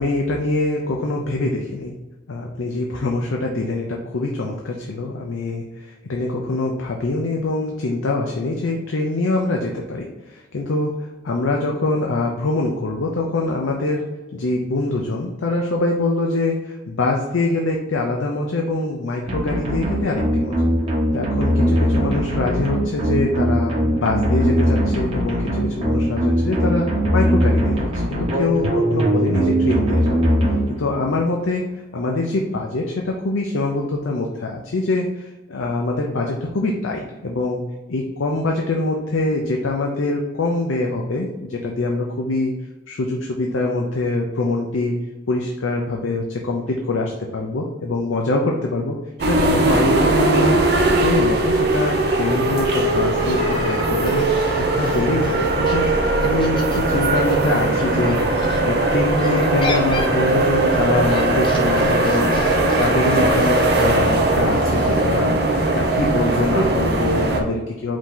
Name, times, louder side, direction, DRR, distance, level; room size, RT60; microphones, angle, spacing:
voice 1, 0.0-1.9 2.3-10.9 11.2-14.1 14.3-16.5 16.9-20.7 21.1-26.9 27.1-30.3 30.8-31.6 31.9-37.6 37.9-42.5 42.9-45.0 45.3-50.6 51.0-55.9 56.2-62.4 62.8-65.4 65.7-68.0, left 2 dB, 85° left, 0 dB, 0.6 m, -24 dB
sound 1, 19.3-31.1, equal, 30° right, 1.1 m, -20 dB
sound 2, 49.2-67.4, right 2 dB, 50° right, 0.7 m, -19 dB
sound 3, 53.4-58.6 59.2-65.0, left 3 dB, 25° left, 0.5 m, -34 dB
4.9 x 2.8 x 3.8 m, 1.1 s
head